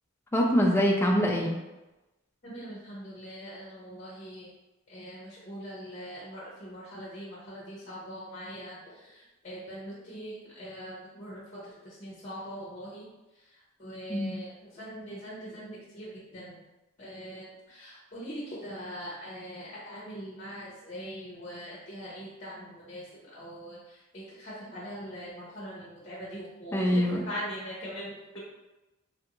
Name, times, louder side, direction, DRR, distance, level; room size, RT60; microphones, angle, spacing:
voice 1, 0.3-1.5 14.1-14.3 26.7-27.2, equal, 10° left, 0 dB, 0.3 m, -24 dB
voice 2, 2.4-4.5 4.9-13.0 13.8-16.6 17.0-23.1 23.3-28.4, equal, 35° left, -6 dB, 0.7 m, -42 dB
3.3 x 2.4 x 2.9 m, 1.0 s
head